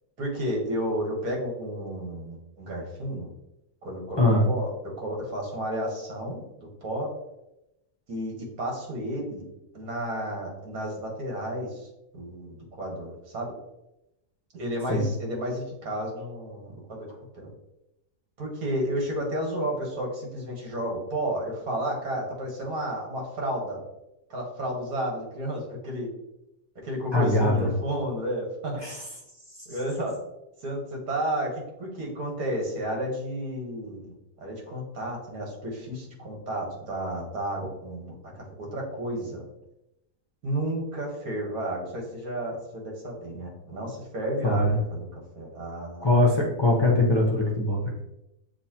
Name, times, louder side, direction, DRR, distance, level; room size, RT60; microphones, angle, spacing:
voice 1, 0.2-3.3 3.8-6.4 6.8-7.2 8.1-9.5 9.7-11.9 12.1-13.6 14.5-17.1 17.3-17.5 18.4-23.8 24.3-26.1 26.8-28.9 29.7-30.2 30.6-39.4 40.4-46.3, equal, 65° right, -1 dB, 1.7 m, -32 dB
voice 2, 4.2-4.5 14.9-15.1 27.1-27.8 28.8-29.0 44.4-44.8 46.0-47.8, left 1 dB, 35° left, -4 dB, 0.4 m, -22 dB
6.8 x 2.5 x 2.8 m, 0.88 s
omnidirectional pair, 1.7 m